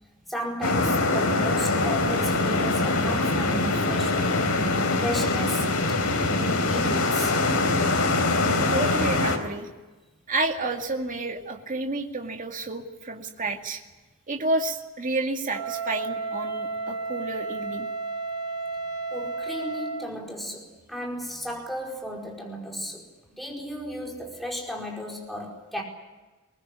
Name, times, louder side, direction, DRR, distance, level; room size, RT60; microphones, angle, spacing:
voice 1, 0.3-4.5 5.0-6.0 6.3-7.4 19.1-23.1 23.4-25.8, equal, ahead, 4.8 m, -34 dB
sound 1, 0.6-9.4, left 2 dB, 80° left, 3.7 m, -23 dB
voice 2, 8.7-9.7 10.3-13.8 14.3-17.9, right 2 dB, 40° right, 2.3 m, -30 dB
Wind instrument woodwind instrument, 15.5-20.1, right 3 dB, 85° right, 2.8 m, -32 dB
22.5 x 19.5 x 9.8 m
head